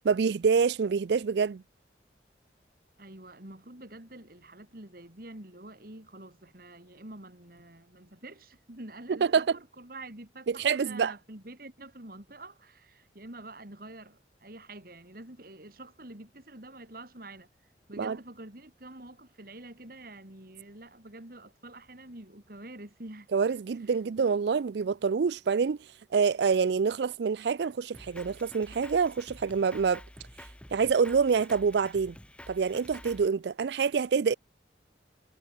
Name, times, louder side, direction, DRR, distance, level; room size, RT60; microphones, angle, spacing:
voice 1, 0.0-1.6 9.1-9.5 10.5-11.1 18.0-18.2 23.3-25.8 26.1-30.0 30.7-32.2 32.5-34.3, right 5 dB, 70° right, 0.4 m, -26 dB
voice 2, 3.0-17.5 17.9-23.3, right 2 dB, 55° right, 3.4 m, -47 dB
Drum kit, 27.9-33.3, left 1 dB, 5° left, 6.3 m, -49 dB
head